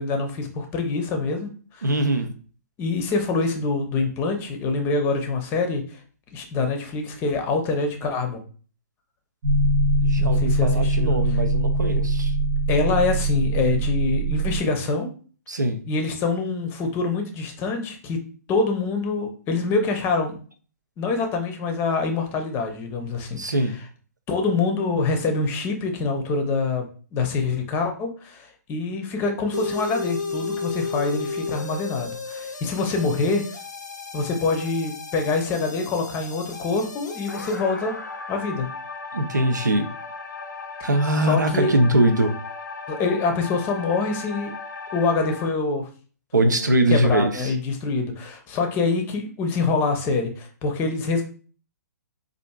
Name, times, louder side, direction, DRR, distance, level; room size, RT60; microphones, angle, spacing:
voice 1, 0.0-1.9 2.8-5.8 6.3-8.4 10.2-11.4 12.7-15.1 15.9-18.2 18.5-20.4 21.0-23.7 24.3-33.4 34.1-37.9 38.3-38.7 41.2-41.7 42.9-44.5 44.9-45.9 46.4-51.2, left 4 dB, 25° left, 4 dB, 0.6 m, -25 dB
voice 2, 1.8-2.3 10.0-12.3 15.5-15.8 23.4-23.8 39.1-39.9 40.8-42.3 46.3-47.5, right 1 dB, 85° right, 7 dB, 0.5 m, -22 dB
sound 1, 9.4-14.6, right 2 dB, 40° right, 0.8 m, -22 dB
sound 2, 29.5-45.5, left 4 dB, 85° left, 0.5 m, -34 dB
4.2 x 2.5 x 2.3 m, 0.40 s
figure-of-eight pair, 125°, 9 cm